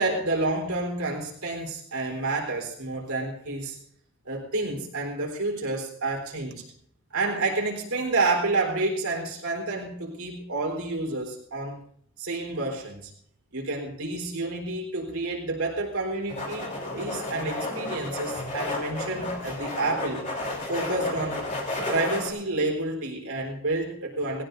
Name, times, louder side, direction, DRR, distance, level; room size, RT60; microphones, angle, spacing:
voice 1, 0.0-3.8 4.3-6.6 7.1-11.8 12.2-13.1 13.5-20.2 20.7-21.5 21.9-24.4, right 2 dB, 80° right, 1 dB, 4.1 m, -29 dB
sound 1, 16.3-22.3, left 2 dB, 35° left, 3.5 m, -32 dB
19.0 x 17.0 x 2.7 m, 0.62 s
head